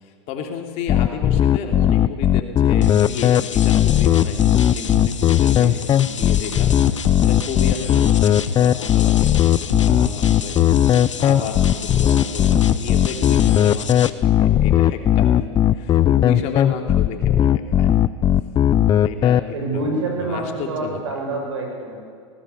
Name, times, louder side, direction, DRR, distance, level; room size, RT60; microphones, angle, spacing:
voice 1, 0.0-6.7 7.0-10.6 11.2-17.9 19.0-21.0, left 6 dB, 45° left, 3 dB, 3.1 m, -32 dB
sound 1, 0.9-19.4, left 11 dB, 25° left, 0.6 m, -16 dB
sound 2, 2.8-14.1, left 6 dB, 90° left, 1.2 m, -30 dB
voice 2, 19.5-22.0, right 3 dB, 75° right, 1 dB, 7.2 m, -27 dB
18.5 x 18.5 x 8.4 m, 2.2 s
hypercardioid pair, 100°, 15 cm